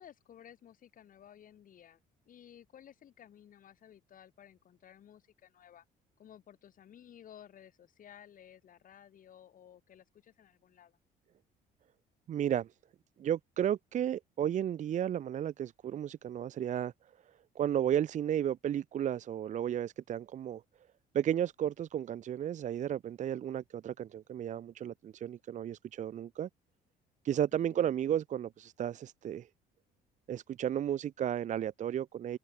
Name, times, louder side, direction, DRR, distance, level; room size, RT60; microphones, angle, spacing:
voice 1, 0.0-2.0 2.3-5.8 6.2-11.0 27.3-27.9, left 10 dB, 55° left, 4.8 m, -56 dB
voice 2, 12.3-12.7 13.2-16.9 17.5-20.6 21.1-26.5 27.2-29.5 30.3-32.4, right 10 dB, 45° right, 0.7 m, -33 dB
cardioid pair, 110°, 17 cm